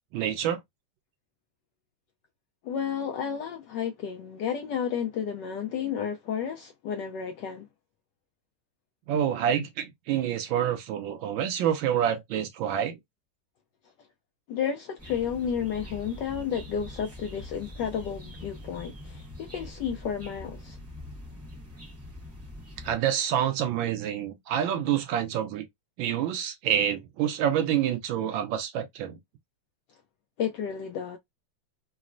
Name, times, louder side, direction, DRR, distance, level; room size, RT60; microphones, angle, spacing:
voice 1, 0.1-0.6 9.1-13.0 22.8-25.7 26.0-29.2, right 10 dB, 75° right, 1.3 m, -27 dB
voice 2, 2.6-7.7 14.5-20.8 30.4-31.2, left 8 dB, 80° left, 1.0 m, -32 dB
sound 1, 15.0-23.0, left 1 dB, 10° right, 0.7 m, -44 dB
3.9 x 2.1 x 2.5 m
omnidirectional pair, 2.3 m